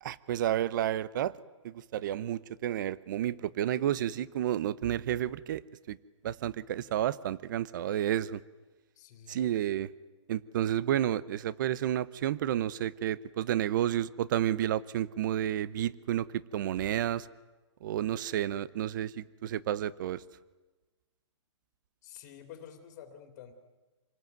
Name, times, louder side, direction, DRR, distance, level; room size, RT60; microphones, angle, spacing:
voice 1, 0.0-1.3 1.6-5.6 5.9-6.0 6.2-8.4 9.3-9.9 10.3-17.3 17.8-20.2, right 11 dB, 40° right, 19 dB, 0.8 m, -31 dB
voice 2, 8.9-9.5 22.0-23.5, left 9 dB, 30° left, 6 dB, 2.6 m, -49 dB
27.5 x 20.0 x 9.3 m, 1.2 s
hypercardioid pair, 155°, 16 cm